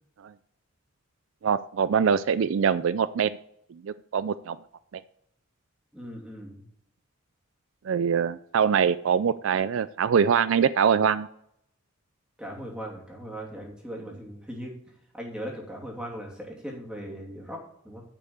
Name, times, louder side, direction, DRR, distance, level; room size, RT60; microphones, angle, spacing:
voice 1, 1.4-3.4 3.8-4.6 7.8-11.3, right 7 dB, 65° right, 15 dB, 0.4 m, -23 dB
voice 2, 5.9-6.6 12.4-14.7 15.1-18.0, equal, 5° right, -2 dB, 2.8 m, -39 dB
10.0 x 5.4 x 7.1 m, 0.72 s
head